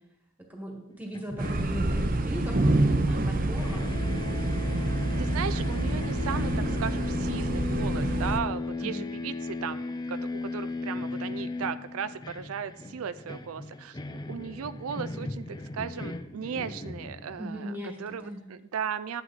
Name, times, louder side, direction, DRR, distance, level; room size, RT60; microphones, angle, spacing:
voice 1, 0.5-3.9 8.8-9.1 17.3-18.4, equal, 10° right, 0 dB, 1.7 m, -39 dB
sound 1, 1.1-3.3 3.6-17.6, left 2 dB, 20° left, 0.4 m, -36 dB
sound 2, 1.4-8.4, right 1 dB, 40° right, 0.7 m, -27 dB
voice 2, 5.2-18.2 18.5-19.2, right 7 dB, 90° right, 13 dB, 0.4 m, -36 dB
11.5 x 7.7 x 4.1 m, 0.89 s
head